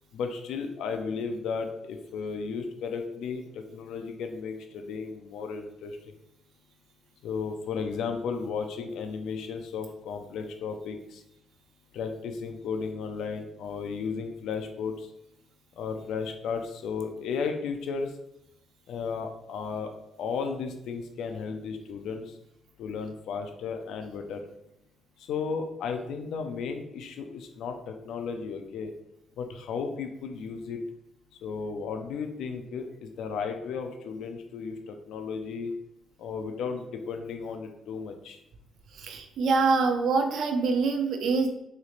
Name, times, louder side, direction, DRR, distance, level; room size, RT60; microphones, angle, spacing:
voice 1, 0.1-6.1 7.2-11.2 11.9-15.1 15.8-18.2 18.9-19.9 20.2-22.4 22.8-24.4 25.2-28.9 29.4-30.8 31.4-35.7 36.2-38.4, left 5 dB, 80° left, 5 dB, 0.4 m, -34 dB
voice 2, 38.9-41.5, right 4 dB, 70° right, 5 dB, 0.5 m, -25 dB
3.9 x 3.1 x 2.4 m, 0.81 s
cardioid pair, 90°, 0 cm